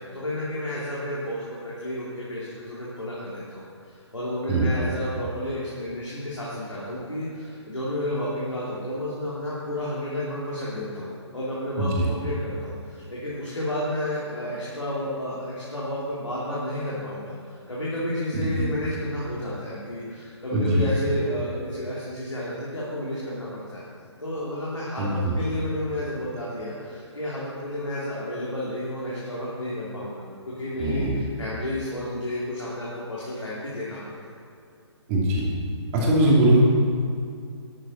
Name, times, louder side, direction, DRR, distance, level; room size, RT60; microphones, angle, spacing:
voice 1, 0.0-23.8 24.2-34.0 34.3-34.4, left 1 dB, 85° left, -8 dB, 3.3 m, -31 dB
voice 2, 18.3-18.6 20.5-20.8 25.0-25.3 30.8-31.1 35.1-35.4 35.9-36.6, right 1 dB, 30° right, -4 dB, 3.0 m, -21 dB
13.0 x 9.7 x 4.5 m, 2.4 s
figure-of-eight pair, 135°, 15 cm